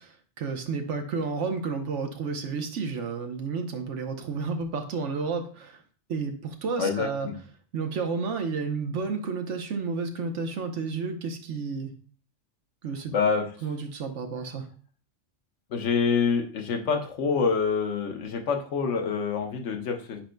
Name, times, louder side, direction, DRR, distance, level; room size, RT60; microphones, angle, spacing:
voice 1, 0.0-5.8 6.1-7.3 7.7-11.9 12.8-13.1 13.6-14.7, right 4 dB, 85° right, 5 dB, 1.2 m, -31 dB
voice 2, 6.8-7.4 13.1-13.4 15.7-20.2, left 5 dB, 80° left, 4 dB, 1.2 m, -26 dB
8.7 x 5.1 x 2.2 m, 0.43 s
omnidirectional pair, 1.2 m